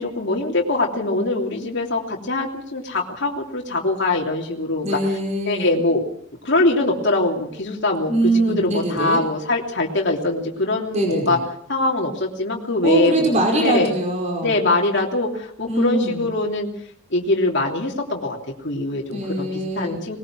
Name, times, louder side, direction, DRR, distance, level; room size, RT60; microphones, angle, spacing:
voice 1, 0.0-4.8 5.4-6.0 6.4-8.1 8.4-11.4 11.7-13.9 14.4-16.7 17.1-18.4 18.6-20.2, left 2 dB, 55° left, -1 dB, 3.1 m, -22 dB
voice 2, 4.8-5.8 8.1-9.2 10.9-11.4 12.8-14.5 15.7-16.2 19.1-20.0, right 1 dB, 35° right, 1 dB, 5.2 m, -22 dB
21.0 x 20.5 x 6.2 m, 0.69 s
head